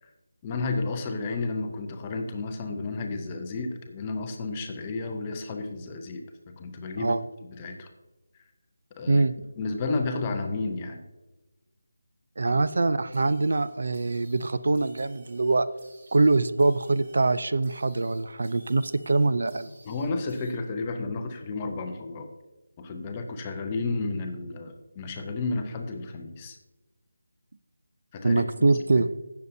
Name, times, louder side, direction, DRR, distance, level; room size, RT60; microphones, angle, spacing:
voice 1, 0.4-7.2 7.5-7.9 9.0-9.2 9.6-11.0 19.8-22.3 22.8-26.6 28.1-28.4 29.0-29.1, left 3 dB, 10° left, 4 dB, 0.5 m, -32 dB
voice 2, 12.4-15.7 16.1-19.7 28.2-29.1, right 3 dB, 45° right, 14 dB, 0.3 m, -23 dB
weird alarm, 13.1-20.5, right 2 dB, 25° right, 1.7 m, -56 dB
16.0 x 6.8 x 2.7 m, 1.1 s
figure-of-eight pair, 180°, 0 cm